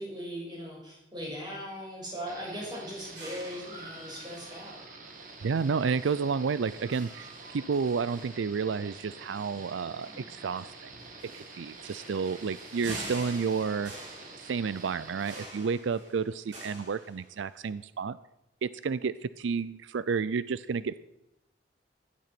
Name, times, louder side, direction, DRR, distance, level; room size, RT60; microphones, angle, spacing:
voice 1, 0.0-4.8, equal, 25° right, -2 dB, 5.9 m, -39 dB
sound 1, 2.3-15.5, right 3 dB, 45° right, 2.1 m, -48 dB
sound 2, 3.2-17.6, right 1 dB, 70° right, 7.2 m, -47 dB
voice 2, 5.4-10.9 11.3-13.9 14.4-18.2 18.6-21.0, right 5 dB, 85° right, 17 dB, 0.4 m, -31 dB
16.0 x 11.5 x 6.0 m, 0.90 s
head